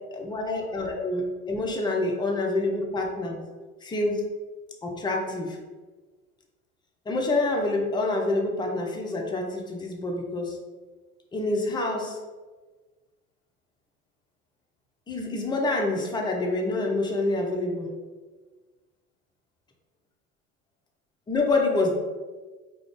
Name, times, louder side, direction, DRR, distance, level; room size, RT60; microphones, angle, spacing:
voice 1, 0.1-3.4 3.8-4.3 4.8-5.6 7.1-10.6 11.3-12.2 15.1-17.9 21.3-22.0, left 2 dB, 10° left, 1 dB, 0.4 m, -27 dB
2.3 x 2.1 x 3.5 m, 1.3 s
hypercardioid pair, 65°, 39 cm